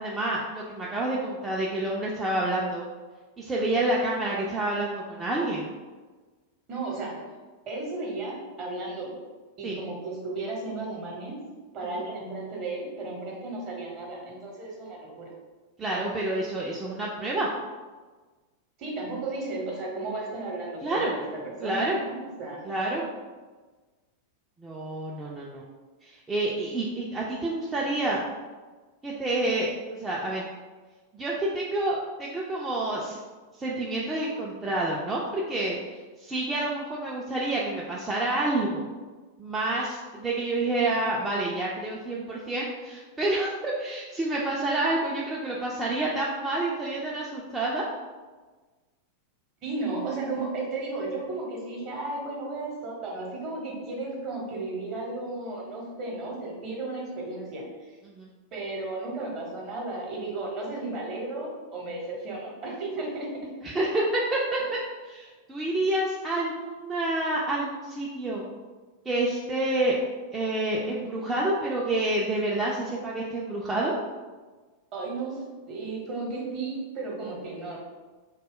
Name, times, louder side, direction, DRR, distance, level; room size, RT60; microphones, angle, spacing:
voice 1, 0.0-2.8 3.4-5.7 9.6-9.8 11.8-12.0 15.8-17.5 20.8-21.1 21.6-22.0 22.6-23.1 24.6-25.6 26.0-28.2 29.0-30.4 31.1-33.2 33.6-35.8 36.2-38.8 39.4-47.9 58.1-58.3 63.6-64.4 65.0-68.4 69.1-70.0 70.3-74.0, right 2 dB, 15° right, -5 dB, 0.3 m, -28 dB
voice 2, 6.7-7.3 7.7-9.2 9.6-11.4 11.7-15.3 18.8-22.6 49.6-57.9 58.5-63.3 74.9-77.8, right 2 dB, 35° right, -2 dB, 0.8 m, -34 dB
2.2 x 2.0 x 3.5 m, 1.3 s
figure-of-eight pair, 90°, 0 cm